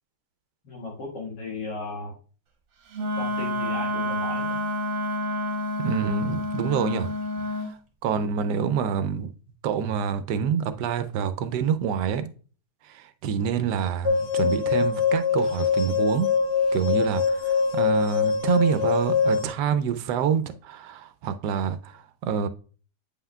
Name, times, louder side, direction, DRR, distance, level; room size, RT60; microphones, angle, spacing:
voice 1, 0.6-2.1 3.2-4.6, left 3 dB, 85° left, 2.4 m, -36 dB
Wind instrument woodwind instrument, 2.9-7.7, left 1 dB, 55° right, 1.3 m, -29 dB
voice 2, 5.8-7.1 8.0-9.3 9.6-12.3 12.8-16.3 16.7-22.5, right 7 dB, 85° right, 1.2 m, -27 dB
sound 1, 14.0-19.4, left 5 dB, 60° left, 0.7 m, -23 dB
8.5 x 5.6 x 2.3 m
omnidirectional pair, 1.8 m